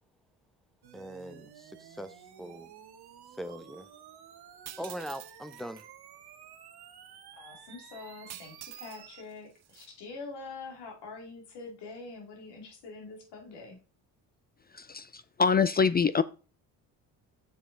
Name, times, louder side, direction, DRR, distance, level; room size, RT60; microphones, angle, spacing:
sound 1, 0.8-9.2, right 9 dB, 65° right, 1.2 m, -52 dB
voice 1, 0.9-2.7 3.4-3.9 4.8-5.9, equal, ahead, 0.8 m, -41 dB
sound 2, 4.7-5.9 8.3-9.0 9.3-9.9, right 11 dB, 40° right, 0.5 m, -47 dB
voice 2, 7.4-13.8, left 3 dB, 75° left, 2.5 m, -45 dB
voice 3, 14.8-16.2, left 6 dB, 25° left, 0.3 m, -25 dB
7.2 x 4.9 x 3.8 m
supercardioid pair, 60°, 41 cm